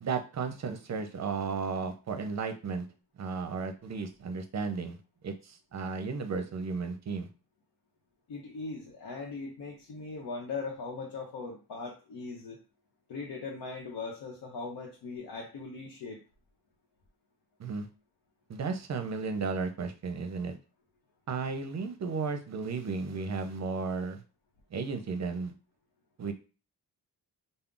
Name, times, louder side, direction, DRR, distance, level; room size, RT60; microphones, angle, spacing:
voice 1, 0.0-2.9 3.2-5.0 5.2-7.3 17.6-17.9 18.5-20.6 21.3-24.2 24.7-25.5 26.2-26.3, right 4 dB, 40° right, 7 dB, 0.6 m, -34 dB
voice 2, 8.3-12.6 13.1-16.2, left 4 dB, 70° left, 0 dB, 0.8 m, -39 dB
2.3 x 2.0 x 3.7 m, 0.34 s
cardioid pair, 70°, 42 cm